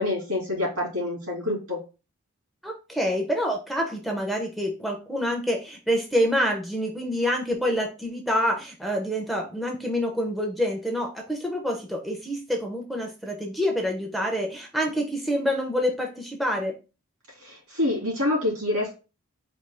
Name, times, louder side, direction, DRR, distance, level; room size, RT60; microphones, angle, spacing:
voice 1, 0.0-1.8 17.4-18.9, left 2 dB, 85° right, -1 dB, 2.5 m, -27 dB
voice 2, 2.6-16.7, equal, ahead, 0 dB, 0.6 m, -27 dB
4.3 x 2.8 x 3.4 m, 0.31 s
head